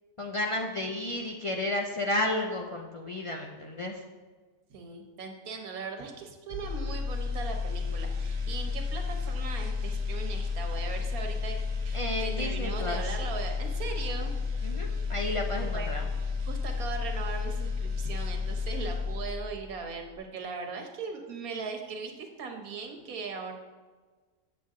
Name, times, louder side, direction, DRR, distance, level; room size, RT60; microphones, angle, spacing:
voice 1, 0.2-4.0 11.9-13.0 14.6-16.0, left 1 dB, 55° left, 1 dB, 0.3 m, -32 dB
voice 2, 4.7-14.3 15.6-16.1 16.4-23.5, right 5 dB, 90° right, 3 dB, 1.5 m, -39 dB
sound 1, 6.5-19.6 20.0-20.2, left 4 dB, 50° right, 1.0 m, -32 dB
7.8 x 7.6 x 3.7 m, 1.4 s
omnidirectional pair, 1.5 m